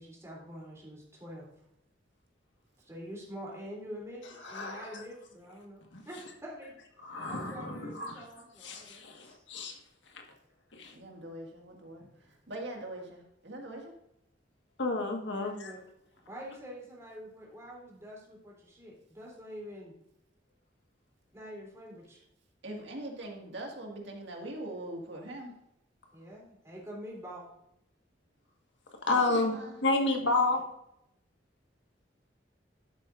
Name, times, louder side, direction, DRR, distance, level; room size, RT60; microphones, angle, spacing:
voice 1, 0.0-1.5 2.8-6.7 7.3-9.4 15.2-15.8 16.3-19.9 21.3-22.2 26.1-27.5, equal, 15° right, -3 dB, 3.2 m, -46 dB
voice 2, 4.4-5.0 5.9-6.0 7.0-8.1 8.6-9.8 10.7-10.9 14.8-15.7 29.1-29.6 29.8-30.6, left 2 dB, 90° left, 3 dB, 1.6 m, -30 dB
voice 3, 10.9-13.9 22.6-25.5 29.1-29.8, right 1 dB, 70° right, 1 dB, 2.0 m, -42 dB
11.5 x 8.0 x 2.6 m, 0.82 s
head